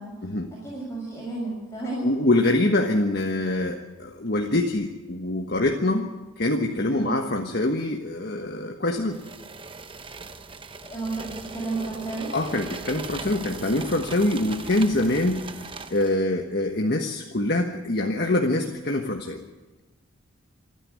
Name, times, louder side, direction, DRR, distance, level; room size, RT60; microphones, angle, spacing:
voice 1, 0.6-2.1 6.9-7.2 10.8-12.3, right 2 dB, 15° left, -5 dB, 6.5 m, -32 dB
voice 2, 2.0-6.1 6.4-9.2 12.3-15.5 15.9-19.4, left 1 dB, 50° left, 2 dB, 1.4 m, -24 dB
sound 1, 9.1-16.2, right 3 dB, 25° right, 0.9 m, -39 dB
27.0 x 10.0 x 9.6 m, 1.2 s
head